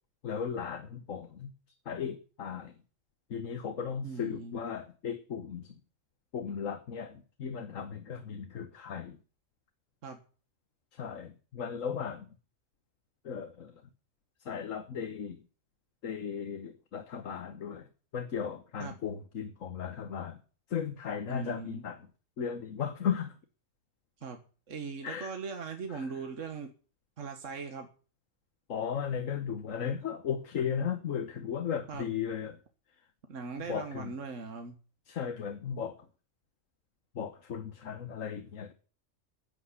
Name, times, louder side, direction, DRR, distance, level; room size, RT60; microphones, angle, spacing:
voice 1, 0.2-1.5 1.8-2.7 3.3-5.8 6.3-9.2 10.9-12.3 13.2-13.8 14.4-15.4 16.0-17.9 18.1-20.4 20.7-22.1 22.4-23.3 25.0-25.4 25.9-26.1 28.7-32.6 33.7-34.1 35.1-36.1 37.1-38.7, left 7 dB, 80° left, 1.6 m, -36 dB
voice 2, 4.0-4.5 10.0-10.2 18.8-18.9 21.3-21.8 24.2-24.4 24.7-26.7 27.2-27.9 31.9-32.1 33.3-34.8, right 4 dB, 70° right, 1.8 m, -39 dB
10.5 x 8.3 x 9.7 m
omnidirectional pair, 1.3 m